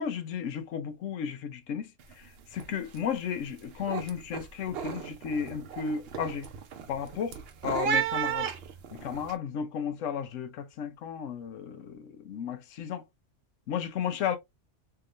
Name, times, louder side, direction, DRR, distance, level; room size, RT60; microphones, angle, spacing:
voice 1, 0.0-6.5 6.9-8.5 8.9-13.0 13.7-14.4, left 7 dB, 80° left, 1.0 m, -34 dB
sound 1, 2.0-2.3 2.5-3.0 3.4-9.3, right 8 dB, 60° right, 0.8 m, -34 dB
3.4 x 2.9 x 2.4 m
omnidirectional pair, 1.3 m